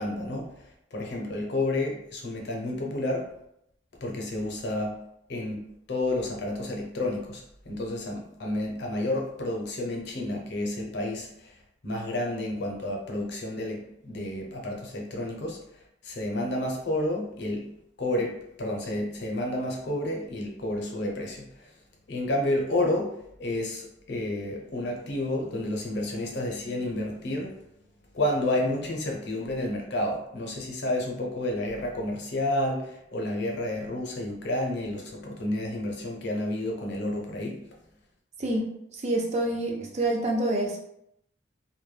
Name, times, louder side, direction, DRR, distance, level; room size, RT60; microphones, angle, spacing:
voice 1, 0.0-3.3 4.0-5.0 5.3-17.7 18.0-21.7 22.1-27.6 28.1-37.7, left 1 dB, 60° left, 0 dB, 0.6 m, -30 dB
voice 2, 38.9-40.8, right 1 dB, 35° right, 1 dB, 0.4 m, -27 dB
2.1 x 2.1 x 3.2 m, 0.78 s
head